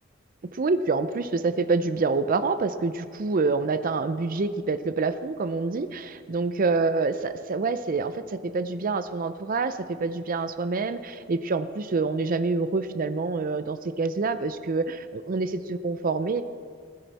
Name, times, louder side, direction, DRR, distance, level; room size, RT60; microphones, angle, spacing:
voice 1, 0.5-16.4, right 3 dB, 45° right, 12 dB, 0.5 m, -27 dB
19.5 x 10.0 x 4.2 m, 2.1 s
head